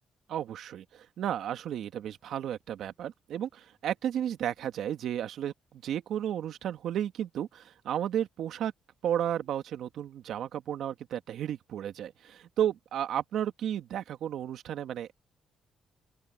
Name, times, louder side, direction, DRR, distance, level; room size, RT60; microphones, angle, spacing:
voice 1, 0.3-8.7 9.0-15.1, right 10 dB, 75° right, 2.0 m, -33 dB
open air
cardioid pair, 90°, 0 cm